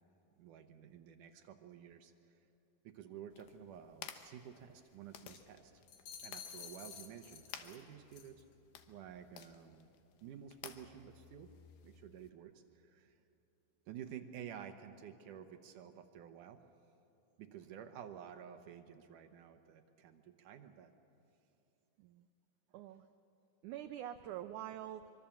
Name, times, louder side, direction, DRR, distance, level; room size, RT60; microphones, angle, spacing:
voice 1, 0.4-2.4 2.8-5.8 6.2-8.4 8.9-9.9 10.2-11.5 11.8-13.1 13.9-16.6 17.4-20.9, right 9 dB, 70° right, 7 dB, 2.2 m, -52 dB
sound 1, 3.3-12.3, left 9 dB, 80° left, 2.9 m, -55 dB
sound 2, 5.9-7.8 8.1-8.4, left 8 dB, 60° left, 2.7 m, -51 dB
voice 2, 22.7-23.1 23.6-25.1, right 12 dB, 85° right, 9 dB, 1.7 m, -45 dB
24.5 x 24.5 x 7.2 m, 2.8 s
omnidirectional pair, 4.3 m